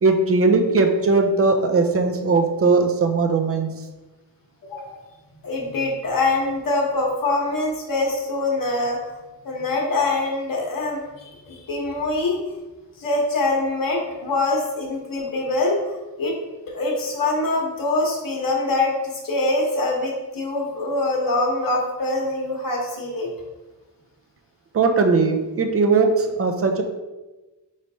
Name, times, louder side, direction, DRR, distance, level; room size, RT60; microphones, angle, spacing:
voice 1, 0.0-3.7 24.7-26.8, right 3 dB, 35° right, 5 dB, 0.5 m, -19 dB
voice 2, 4.6-5.0 5.4-9.0 9.4-12.4 13.0-15.9 16.2-16.3 16.7-23.3, left 2 dB, 50° left, -1 dB, 1.0 m, -24 dB
4.3 x 3.2 x 2.7 m, 1.1 s
cardioid pair, 85°, 43 cm